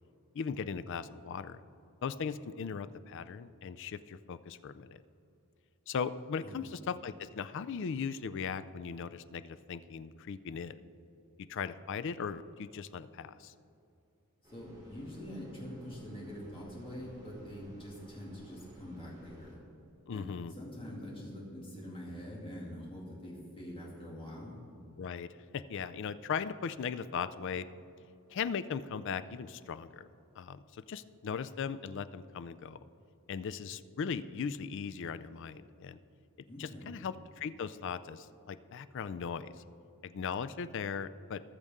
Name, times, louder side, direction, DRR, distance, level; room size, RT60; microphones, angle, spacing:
voice 1, 0.3-1.6 2.0-4.9 5.9-10.8 11.5-13.5 20.1-20.5 25.0-25.3 25.5-27.7 28.3-30.1 30.4-32.9 33.3-36.0 36.6-39.5 40.0-41.4, left 6 dB, 55° left, 14 dB, 0.4 m, -38 dB
sound 1, 14.4-19.6, equal, 20° right, 2.3 m, -57 dB
voice 2, 14.5-19.5 20.1-24.6 36.5-36.9, equal, 25° left, -4 dB, 2.4 m, -45 dB
19.0 x 6.6 x 3.6 m, 2.7 s
head